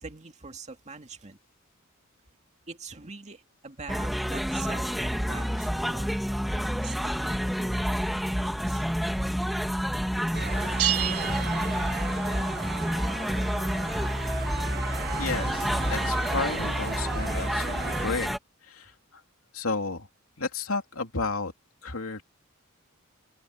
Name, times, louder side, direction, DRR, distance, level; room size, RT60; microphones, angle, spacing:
voice 1, 0.0-1.4 2.7-6.1 6.8-8.8, right 4 dB, 30° right, 2.1 m, -44 dB
sound 1, 3.9-18.4, equal, ahead, 1.4 m, -29 dB
sound 2, 10.3-18.1, right 5 dB, 45° right, 1.1 m, -37 dB
sound 3, 10.8-12.4, right 12 dB, 80° right, 1.9 m, -30 dB
voice 2, 15.1-18.4 18.6-19.2 19.5-20.1 20.4-21.5 21.8-22.2, left 3 dB, 70° left, 3.1 m, -32 dB
open air
head